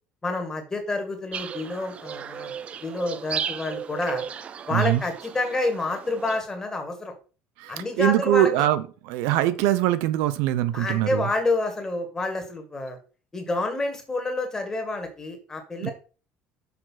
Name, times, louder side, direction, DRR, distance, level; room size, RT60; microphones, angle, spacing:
voice 1, 0.2-2.5 2.8-4.3 4.7-7.1 7.7-8.7 10.7-13.0 13.3-15.9, left 2 dB, 15° left, 3 dB, 2.1 m, -28 dB
sound 1, 1.3-6.4, right 7 dB, 30° right, 0.5 m, -35 dB
voice 2, 4.7-5.0 7.6-11.3 15.8-15.9, right 13 dB, 90° right, 14 dB, 0.7 m, -23 dB
6.7 x 4.9 x 5.7 m, 0.36 s
cardioid pair, 150°, 4 cm